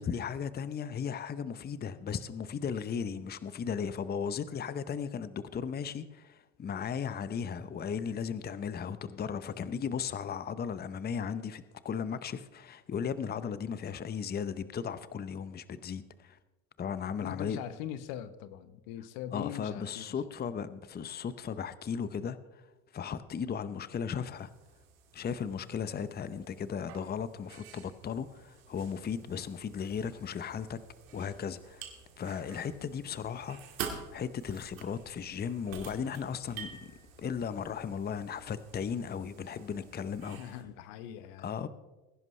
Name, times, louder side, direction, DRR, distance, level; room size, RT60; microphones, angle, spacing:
voice 1, 0.0-16.4 16.8-17.6 19.3-22.6 22.9-24.5 25.1-30.8 31.1-31.8 32.2-33.6 34.1-36.8 37.2-40.5 41.4-41.7, left 7 dB, 25° left, 0.7 m, -36 dB
voice 2, 17.2-20.1 40.4-41.7, left 10 dB, 75° left, 1.0 m, -42 dB
sound 1, 24.4-40.6, right 7 dB, 90° right, 2.1 m, -48 dB
21.0 x 11.0 x 3.2 m
supercardioid pair, 85°, 40 cm